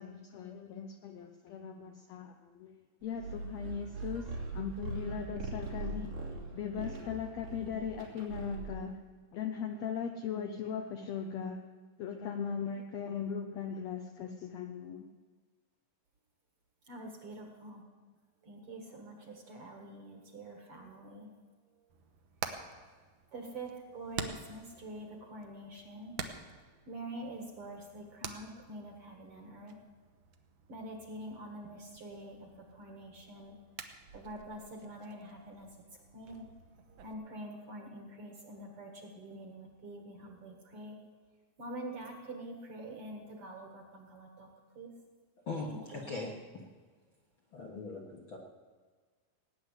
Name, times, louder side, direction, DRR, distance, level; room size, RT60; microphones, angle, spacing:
voice 1, 0.0-6.2 6.5-9.0 9.3-11.6 12.0-15.1, left 7 dB, 90° left, 5 dB, 1.5 m, -39 dB
sound 1, 3.2-8.9, right 3 dB, 85° right, 4.8 m, -41 dB
voice 2, 16.8-17.9 18.4-21.3 21.7-21.9 23.3-26.2 26.9-29.8 30.7-33.7 34.0-36.6 36.9-41.0 41.6-44.9 45.7-46.1, right 1 dB, 50° right, 3 dB, 2.0 m, -46 dB
Hammer, 21.9-37.1, right 7 dB, 70° right, 1.7 m, -48 dB
voice 3, 45.5-46.3 47.5-48.4, left 3 dB, 55° left, 0 dB, 1.5 m, -40 dB
18.0 x 9.5 x 8.1 m, 1.5 s
omnidirectional pair, 4.1 m